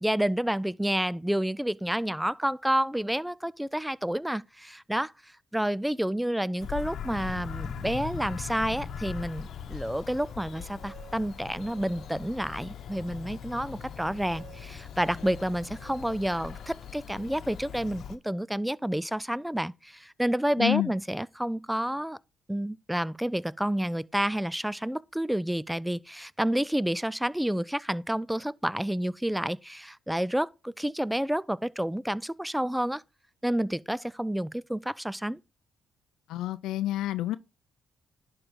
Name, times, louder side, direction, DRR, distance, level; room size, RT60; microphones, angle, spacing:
voice 1, 0.0-5.1 5.5-22.2 22.5-33.0 33.4-35.4, right 1 dB, 5° right, 0.3 m, -29 dB
Bird vocalization bird call bird song, 6.6-18.2, left 7 dB, 65° left, 0.9 m, -40 dB
sound 1, 9.9-12.5 13.0-17.3, right 6 dB, 60° right, 2.5 m, -55 dB
voice 2, 20.6-20.9 36.3-37.4, left 14 dB, 90° left, 0.4 m, -28 dB
10.5 x 3.8 x 5.0 m
cardioid pair, 90°, 0 cm